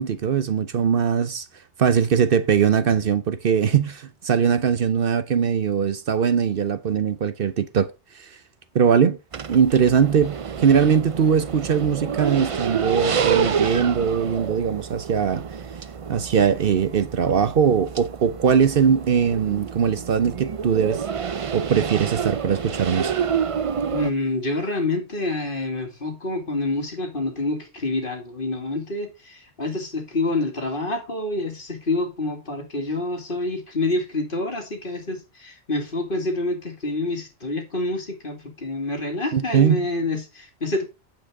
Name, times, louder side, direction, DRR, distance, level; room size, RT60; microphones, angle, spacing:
voice 1, 0.0-1.5 1.8-7.9 8.2-8.3 8.7-9.2 9.5-15.4 16.1-21.0 21.5-23.1 39.3-39.8, right 7 dB, 60° right, 0.9 m, -21 dB
sound 1, 9.3-24.1, right 6 dB, 40° right, 0.5 m, -28 dB
voice 2, 23.9-40.9, left 2 dB, 50° left, 2.3 m, -27 dB
9.1 x 7.8 x 3.4 m
omnidirectional pair, 1.1 m